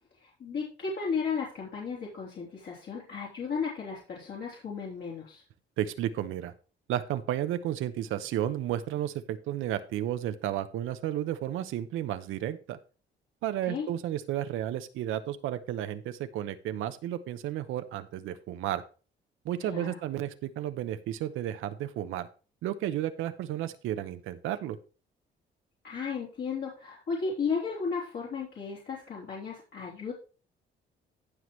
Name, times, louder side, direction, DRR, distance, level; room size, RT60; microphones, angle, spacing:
voice 1, 0.2-5.4 13.7-13.9 19.7-20.0 25.8-30.1, left 5 dB, 60° left, -6 dB, 3.4 m, -34 dB
voice 2, 5.8-6.5 6.9-12.8 13.4-18.8 19.4-22.3 22.6-24.8, right 12 dB, 90° right, 11 dB, 0.9 m, -32 dB
15.0 x 6.0 x 3.2 m, 0.37 s
cardioid pair, 90°, 20 cm